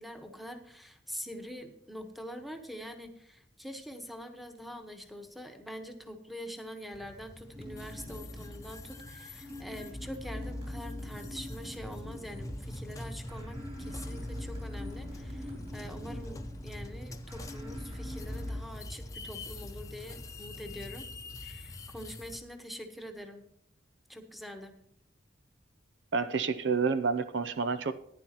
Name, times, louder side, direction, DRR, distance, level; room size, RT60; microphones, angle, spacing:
voice 1, 0.0-21.0 21.4-23.4 24.1-24.7, equal, ahead, 5 dB, 1.3 m, -45 dB
sound 1, 6.9-22.4, left 1 dB, 20° left, 0.9 m, -44 dB
sound 2, 7.6-18.6, left 1 dB, 30° right, 2.9 m, -42 dB
voice 2, 26.1-28.0, right 5 dB, 70° right, 13 dB, 0.6 m, -29 dB
14.5 x 10.5 x 3.0 m, 0.77 s
head